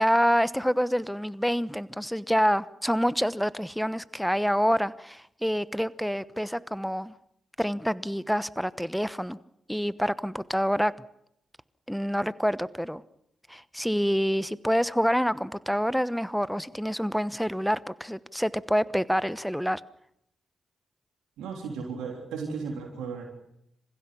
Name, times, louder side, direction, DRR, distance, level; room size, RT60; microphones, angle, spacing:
voice 1, 0.0-7.1 7.6-9.4 9.7-10.9 11.9-13.0 13.5-19.8, equal, ahead, 17 dB, 1.0 m, -27 dB
voice 2, 21.4-23.2, right 5 dB, 85° right, 1 dB, 3.5 m, -35 dB
27.5 x 15.5 x 7.0 m, 0.78 s
hypercardioid pair, 40°, 0 cm